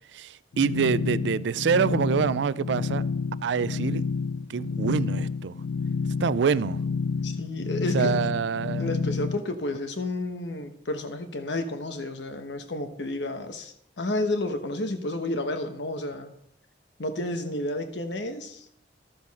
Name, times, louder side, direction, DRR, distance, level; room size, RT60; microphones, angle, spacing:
voice 1, 0.1-3.0 3.4-4.0 4.5-5.6 6.2-6.8 7.9-8.9, right 6 dB, 70° right, 0.3 m, -26 dB
sound 1, 0.5-9.4, left 5 dB, 90° left, 0.4 m, -29 dB
voice 2, 7.2-8.1 8.8-16.3 17.0-18.7, left 2 dB, 70° left, 1.1 m, -31 dB
13.0 x 7.0 x 4.1 m
head